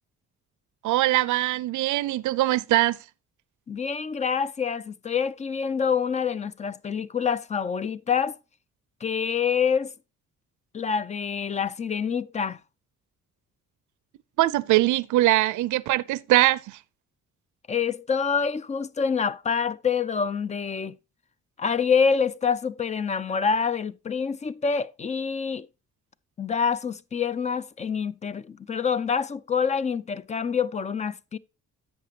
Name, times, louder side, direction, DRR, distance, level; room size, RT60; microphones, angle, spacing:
voice 1, 0.8-3.0 14.4-16.8, right 16 dB, 75° right, 0.5 m, -22 dB
voice 2, 3.7-8.4 9.0-9.9 10.7-12.6 17.7-21.0 21.6-25.7 26.4-31.4, left 6 dB, 25° left, 0.4 m, -26 dB
11.0 x 7.5 x 2.8 m
cardioid pair, 135°, 30 cm